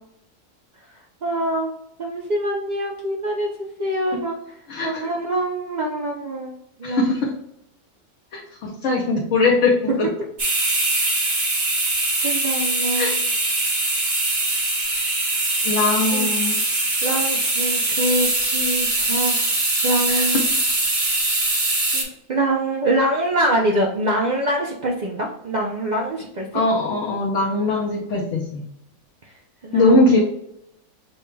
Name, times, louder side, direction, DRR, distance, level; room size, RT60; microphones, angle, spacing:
voice 1, 1.2-1.7 2.0-4.5 4.8-7.1 12.2-13.2 16.1-19.5 19.8-20.4 21.9-26.6 29.6-29.9, right 1 dB, 80° right, -1 dB, 0.4 m, -25 dB
voice 2, 4.7-5.1 6.8-7.3 8.3-10.1 12.9-13.2 15.6-16.6 20.1-20.6 26.5-28.6 29.7-30.2, left 2 dB, 60° left, -2 dB, 1.0 m, -21 dB
sound 1, 10.4-22.0, right 2 dB, 35° right, 1.0 m, -22 dB
6.6 x 2.2 x 3.2 m, 0.78 s
omnidirectional pair, 1.6 m